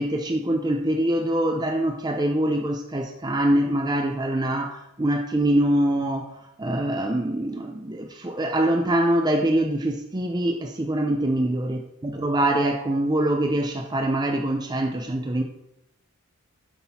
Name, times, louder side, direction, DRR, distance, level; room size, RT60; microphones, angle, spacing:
voice 1, 0.0-15.4, right 1 dB, 20° right, 4 dB, 0.5 m, -24 dB
8.1 x 5.9 x 4.2 m, 0.83 s
head